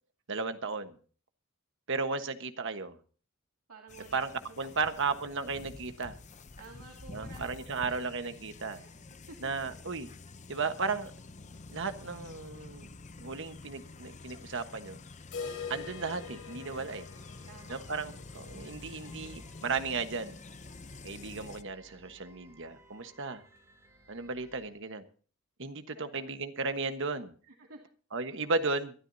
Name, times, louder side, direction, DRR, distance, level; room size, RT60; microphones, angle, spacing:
voice 1, 0.3-0.9 1.9-3.0 4.1-4.3 4.6-6.2 7.1-8.8 9.4-10.1 10.5-11.1 11.7-12.9 13.2-15.0 15.7-17.0 17.7-20.4 21.0-23.4 24.1-25.0 25.6-27.3 28.1-28.9, right 4 dB, 60° right, 8 dB, 1.3 m, -35 dB
voice 2, 3.7-4.7 5.0-5.4 6.6-9.4 16.8-18.1 25.9-26.3 27.4-27.8, right 3 dB, 85° right, 0 dB, 2.4 m, -54 dB
sound 1, 3.9-21.6, left 3 dB, 35° left, 0.7 m, -49 dB
sound 2, 15.3-21.1 21.4-21.5 21.9-22.0 22.5-22.6 23.4-23.5, left 5 dB, 80° left, 3.6 m, -45 dB
sound 3, 15.7-24.7, right 1 dB, 15° right, 4.0 m, -59 dB
23.5 x 13.0 x 2.8 m, 0.42 s
head